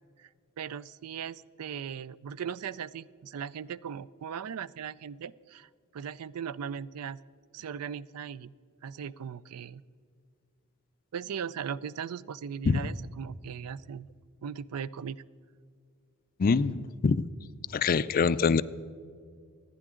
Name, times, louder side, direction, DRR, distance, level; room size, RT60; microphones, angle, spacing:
voice 1, 0.6-7.2 7.5-8.5 8.8-9.8 11.1-14.1 14.4-15.2, right 7 dB, 90° right, 19 dB, 0.4 m, -38 dB
voice 2, 16.4-17.3 17.7-18.6, left 5 dB, 40° left, 15 dB, 0.4 m, -24 dB
25.5 x 10.0 x 3.7 m, 2.2 s
head